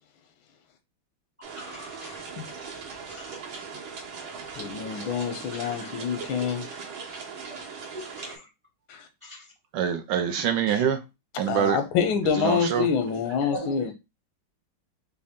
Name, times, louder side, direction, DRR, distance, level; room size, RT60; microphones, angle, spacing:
voice 1, 1.4-2.2 3.1-3.4 5.5-5.9 6.3-6.4 7.9-8.4 9.2-9.5 13.1-13.2 13.5-13.9, right 1 dB, 30° right, 0.6 m, -40 dB
sound 1, 1.4-8.4, right 5 dB, 90° right, 2.1 m, -39 dB
voice 2, 2.0-2.5 4.6-6.7 8.9-9.0 11.5-13.9, left 7 dB, 90° left, 1.5 m, -27 dB
voice 3, 9.7-11.0 11.4-11.8 12.2-12.9, right 9 dB, 75° right, 1.1 m, -25 dB
5.3 x 2.3 x 3.5 m
omnidirectional pair, 2.2 m